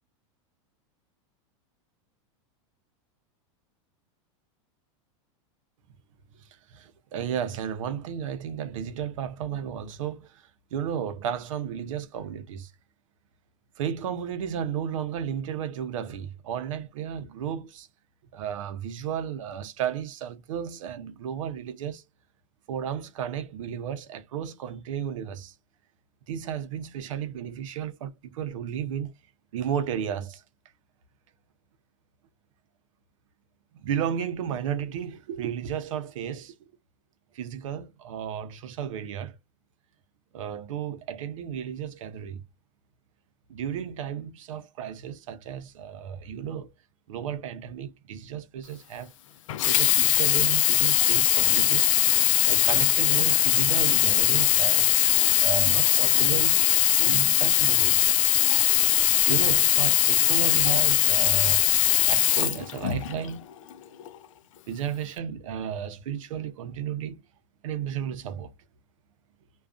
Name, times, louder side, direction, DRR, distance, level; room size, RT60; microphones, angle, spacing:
voice 1, 6.7-10.4 10.7-12.7 13.8-17.9 18.3-22.0 22.7-25.5 26.3-29.1 29.5-30.4 33.8-36.5 37.3-39.3 40.3-42.4 43.5-46.7 47.1-49.1 49.6-51.9 52.5-54.9 55.4-56.6 57.0-58.1 59.2-61.6 62.1-63.4 64.7-67.2 67.6-68.5, right 8 dB, 85° right, 0.6 m, -33 dB
Sink (filling or washing), 49.5-63.3 64.0-64.1, left 13 dB, 85° left, 0.4 m, -21 dB
2.5 x 2.3 x 2.3 m
supercardioid pair, 175°, 16 cm